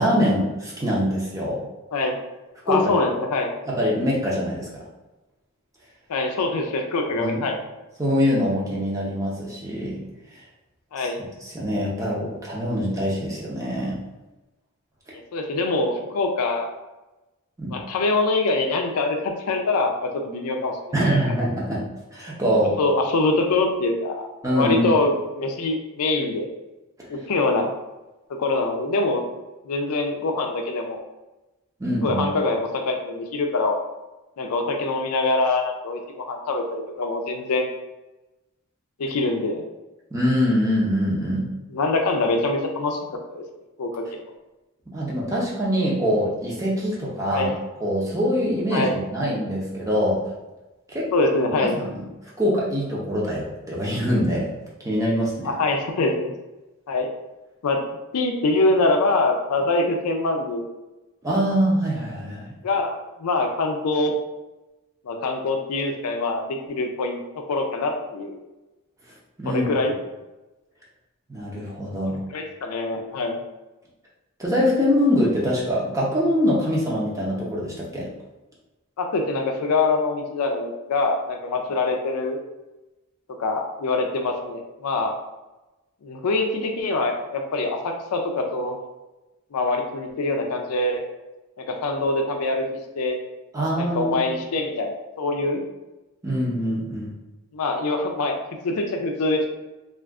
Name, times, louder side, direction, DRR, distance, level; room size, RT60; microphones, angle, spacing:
voice 1, 0.0-1.6 2.7-2.9 3.7-4.8 7.1-7.5 8.0-10.0 11.0-11.1 11.4-13.9 17.6-17.7 20.9-21.8 22.1-22.8 24.4-24.9 31.8-32.2 40.1-41.5 44.9-47.5 47.8-50.2 50.9-51.1 51.6-52.0 52.4-54.5 54.8-55.5 61.2-62.5 69.4-69.7 71.3-72.2 74.4-78.1 93.5-94.2 96.2-97.1, equal, 15° right, -5 dB, 0.6 m, -24 dB
voice 2, 2.7-3.5 6.1-7.6 10.9-11.2 15.3-16.7 17.7-20.8 21.1-21.2 22.8-24.3 24.5-26.5 27.1-27.7 28.3-29.3 29.6-31.0 32.0-33.8 34.4-37.7 39.0-39.6 41.7-43.0 43.3-43.4 43.8-44.2 47.3-47.6 48.7-49.0 51.1-51.8 55.4-56.3 56.9-57.1 57.6-57.8 58.1-60.6 62.6-64.1 65.1-68.3 69.5-69.9 72.3-73.4 79.0-82.4 83.4-85.1 86.0-88.8 89.5-91.1 91.6-92.7 93.0-93.2 93.8-95.6 97.5-98.3 98.6-99.5, left 2 dB, 80° left, 4 dB, 0.4 m, -24 dB
2.4 x 2.3 x 3.5 m, 1.0 s
head